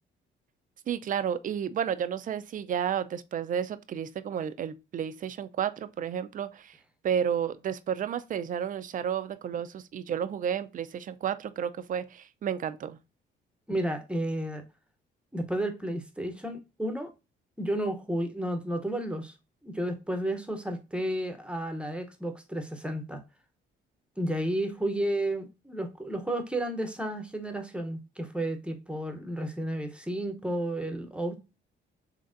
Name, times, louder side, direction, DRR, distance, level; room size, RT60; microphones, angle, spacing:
voice 1, 0.9-6.8 7.0-13.0, right 8 dB, 45° right, 0.4 m, -31 dB
voice 2, 13.7-14.6 15.3-17.1 17.6-19.3 19.6-23.2 24.2-31.4, right 1 dB, 5° right, 0.7 m, -32 dB
3.9 x 3.3 x 2.5 m
cardioid pair, 90°, 20 cm